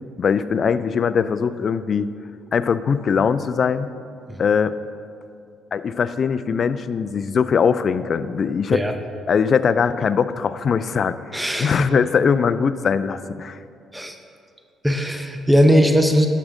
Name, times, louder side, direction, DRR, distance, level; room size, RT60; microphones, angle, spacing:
voice 1, 0.2-2.1 2.5-3.9 4.4-4.7 5.7-8.8 9.3-11.2 11.6-13.6, left 6 dB, 50° left, 14 dB, 0.4 m, -21 dB
voice 2, 11.3-11.9 13.9-14.2 14.8-16.3, equal, 5° right, 5 dB, 0.7 m, -18 dB
11.5 x 6.3 x 3.8 m, 2.4 s
supercardioid pair, 55°, 0 cm